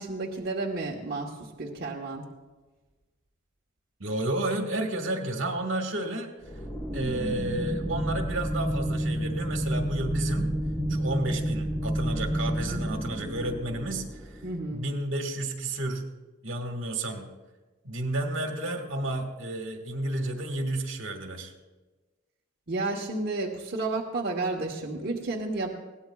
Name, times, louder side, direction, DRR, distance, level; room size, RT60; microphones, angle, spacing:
voice 1, 0.0-2.2 14.4-14.8 22.7-25.7, right 2 dB, 50° right, -2 dB, 1.1 m, -31 dB
voice 2, 4.0-6.3 6.9-10.5 10.9-14.4 14.7-16.0 16.4-17.3 17.8-21.5, right 1 dB, 70° right, 4 dB, 1.7 m, -31 dB
sound 1, 6.4-14.7, equal, 20° left, 1.5 m, -30 dB
21.0 x 17.5 x 2.4 m, 1.2 s
head